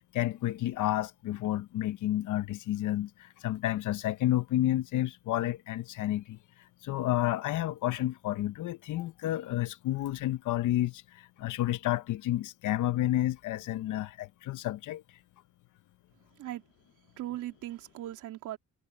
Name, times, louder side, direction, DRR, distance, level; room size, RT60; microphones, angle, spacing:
voice 1, 0.1-6.4 6.8-15.0, left 14 dB, 80° left, 1.0 m, -30 dB
voice 2, 17.2-18.6, right 14 dB, 85° right, 3.5 m, -38 dB
cardioid pair, 90°, 30 cm